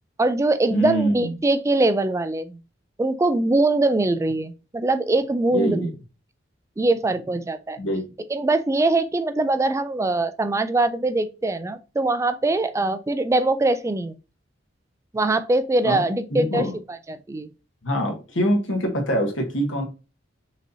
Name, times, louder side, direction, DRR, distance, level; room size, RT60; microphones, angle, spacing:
voice 1, 0.2-2.6 3.0-5.9 6.8-7.8 8.3-14.2 15.1-17.5, right 2 dB, 15° right, 0.3 m, -22 dB
voice 2, 0.7-1.3 5.5-5.9 7.8-8.0 15.8-16.0 16.3-16.7 17.8-19.8, equal, 85° left, 1.3 m, -24 dB
6.0 x 2.8 x 2.7 m
head